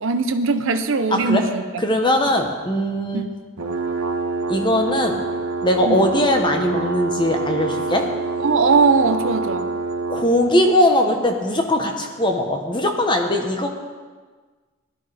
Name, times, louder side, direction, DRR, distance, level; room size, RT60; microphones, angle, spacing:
voice 1, 0.0-1.6 3.1-3.2 5.8-6.1 8.4-9.7, right 4 dB, 60° right, 8 dB, 0.7 m, -19 dB
voice 2, 1.1-1.4 1.8-3.3 4.5-5.2 5.6-8.1 10.1-13.7, left 1 dB, 20° left, 3 dB, 1.0 m, -20 dB
sound 1, 3.6-10.3, right 3 dB, 85° right, 1.1 m, -26 dB
16.5 x 12.0 x 3.4 m, 1.4 s
head